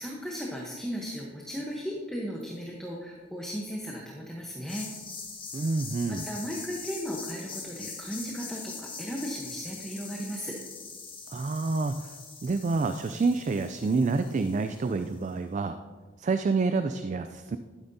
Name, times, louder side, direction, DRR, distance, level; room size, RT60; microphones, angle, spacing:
voice 1, 0.0-4.9 6.1-10.5, equal, 5° left, -2 dB, 0.9 m, -36 dB
sound 1, 4.7-15.2, left 4 dB, 25° left, 1.4 m, -43 dB
voice 2, 5.5-6.3 11.3-12.2 12.4-15.8 16.2-17.6, right 3 dB, 35° right, 9 dB, 0.3 m, -28 dB
12.0 x 9.3 x 2.7 m, 1.4 s
head